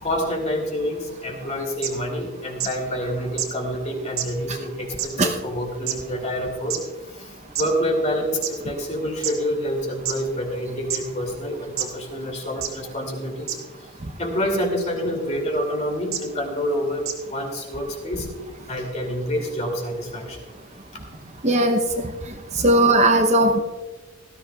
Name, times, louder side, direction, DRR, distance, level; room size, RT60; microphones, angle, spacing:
voice 1, 0.0-6.8 7.1-13.6 14.2-18.3 18.7-20.4, equal, 30° left, 2 dB, 2.5 m, -27 dB
sound 1, 1.8-1.9 2.6-2.7 3.4-3.5 4.2-4.3 5.0-5.1 5.9-6.0 6.7-6.8 7.6-7.7 8.4-8.5 9.2-9.3 10.1-10.2 10.9-11.0 11.8-11.9 12.6-12.7 13.5-13.6 14.8-15.0 16.1-16.2 17.1-17.2, right 10 dB, 75° right, 1.7 m, -26 dB
voice 2, 21.4-22.1 22.6-23.6, right 1 dB, 30° right, 4 dB, 0.7 m, -18 dB
18.0 x 13.5 x 2.3 m, 1.3 s
head